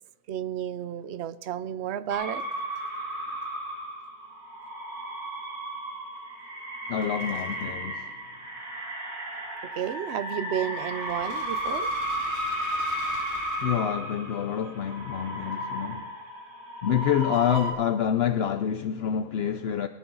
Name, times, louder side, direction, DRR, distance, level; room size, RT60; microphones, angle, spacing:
voice 1, 0.3-2.4 9.7-11.9 17.3-17.4, right 10 dB, 60° right, 0.7 m, -32 dB
sound 1, 2.1-17.7, equal, 45° right, 3.4 m, -34 dB
voice 2, 6.9-8.1 13.6-16.1 16.8-19.9, left 9 dB, 65° left, 0.6 m, -27 dB
22.5 x 10.0 x 3.9 m
omnidirectional pair, 1.6 m